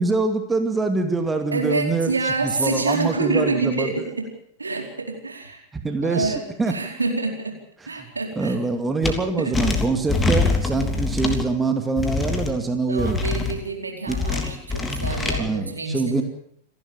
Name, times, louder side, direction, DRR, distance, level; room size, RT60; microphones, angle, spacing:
voice 1, 0.0-3.9 5.8-6.7 8.0-13.2 14.1-14.2 15.4-16.2, right 3 dB, 15° right, 6 dB, 2.4 m, -24 dB
voice 2, 1.5-4.0 4.6-5.6 6.0-7.5 7.9-8.6 9.4-9.5 12.9-16.2, right 3 dB, 80° right, 2 dB, 4.5 m, -27 dB
sound 1, 9.0-9.1 9.5-11.4 12.0-12.5 13.0-13.6 14.1-15.4, left 3 dB, 10° left, 3.3 m, -24 dB
28.5 x 12.0 x 8.7 m, 0.70 s
figure-of-eight pair, 90°, 0 cm